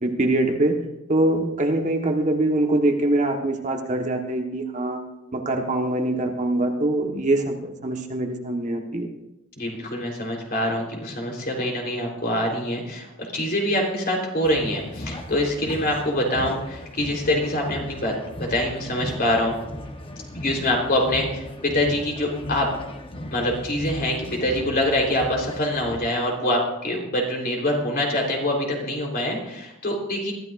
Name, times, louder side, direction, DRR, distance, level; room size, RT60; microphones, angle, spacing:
voice 1, 0.0-0.8 1.1-5.0 5.3-9.1, right 1 dB, 40° right, 2 dB, 1.4 m, -23 dB
voice 2, 9.6-18.1 18.4-19.6 20.3-22.7 23.3-30.3, left 1 dB, 50° left, 0 dB, 3.8 m, -25 dB
sound 1, 14.4-26.0, left 1 dB, 30° left, 1.1 m, -36 dB
22.5 x 14.0 x 2.6 m, 0.91 s
head